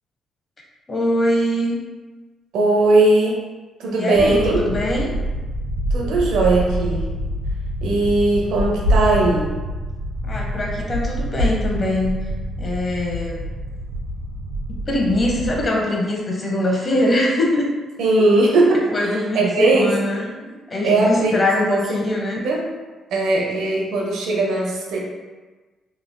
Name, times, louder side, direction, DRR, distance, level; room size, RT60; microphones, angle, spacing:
voice 1, 0.9-1.7 3.9-5.1 10.2-12.1 12.6-13.4 14.9-17.7 18.9-19.5 19.7-20.3 20.7-22.4, left 1 dB, 35° left, -1 dB, 0.8 m, -22 dB
voice 2, 2.5-3.4 3.8-4.6 5.9-7.1 7.8-9.5 18.0-19.9 20.8-21.8 22.4-22.7 23.1-25.0, right 2 dB, 85° right, -2 dB, 0.6 m, -19 dB
sound 1, 4.1-15.7, equal, 60° right, 1.3 m, -26 dB
3.4 x 3.2 x 2.2 m, 1.3 s
cardioid pair, 90°, 0 cm